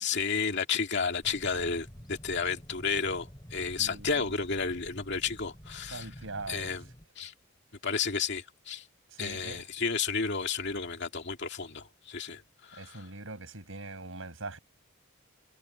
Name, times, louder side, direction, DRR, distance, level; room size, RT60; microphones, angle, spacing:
voice 1, 0.0-6.1 6.5-6.8 7.2-7.3 7.8-8.9 9.2-13.1, left 5 dB, 55° left, 2.3 m, -32 dB
sound 1, 1.2-7.1, equal, 20° left, 6.2 m, -49 dB
voice 2, 3.8-4.4 5.9-6.7 9.1-9.6 12.7-14.6, right 2 dB, 75° right, 6.1 m, -42 dB
head